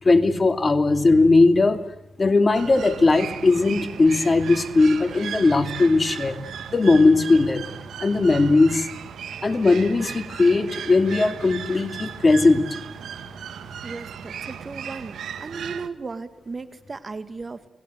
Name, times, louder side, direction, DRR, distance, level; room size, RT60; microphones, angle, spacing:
voice 1, 0.0-1.8 2.2-6.4 6.7-7.7 8.0-8.9 9.4-12.6, left 3 dB, 35° left, 7 dB, 2.6 m, -18 dB
sound 1, 2.5-15.9, right 8 dB, 85° right, 1.9 m, -36 dB
voice 2, 13.8-15.2 15.4-17.7, right 4 dB, 40° right, 11 dB, 2.1 m, -35 dB
30.0 x 20.5 x 8.0 m, 0.89 s
cardioid pair, 70°, 0 cm